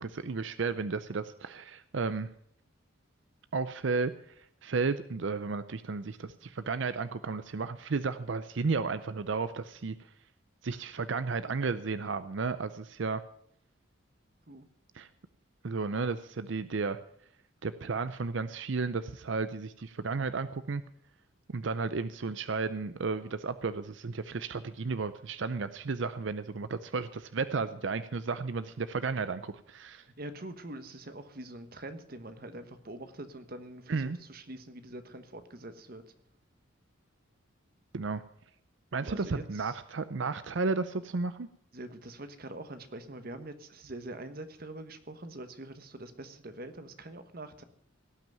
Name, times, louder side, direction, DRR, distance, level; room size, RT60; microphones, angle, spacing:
voice 1, 0.0-2.3 3.5-4.1 4.6-10.0 10.6-13.2 15.0-15.1 15.6-17.0 17.6-20.8 21.5-30.0 33.9-34.2 37.9-38.2 38.9-41.5, right 4 dB, 60° right, 13 dB, 0.5 m, -33 dB
voice 2, 30.0-36.0 39.0-39.8 41.7-47.6, right 1 dB, 45° right, 10 dB, 1.2 m, -44 dB
17.5 x 6.0 x 9.2 m, 0.68 s
head